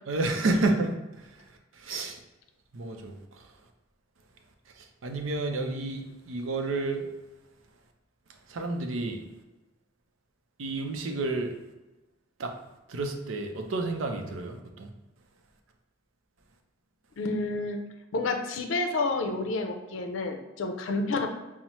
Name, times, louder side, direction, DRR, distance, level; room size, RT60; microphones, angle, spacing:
voice 1, 0.1-2.2 2.7-3.5 4.7-7.1 8.5-9.2 10.6-11.5 12.4-12.5 12.9-14.9, right 2 dB, 90° right, 4 dB, 0.5 m, -31 dB
voice 2, 17.2-17.8 18.1-21.3, left 3 dB, 75° left, 6 dB, 0.5 m, -29 dB
5.4 x 2.0 x 3.0 m, 1.0 s
head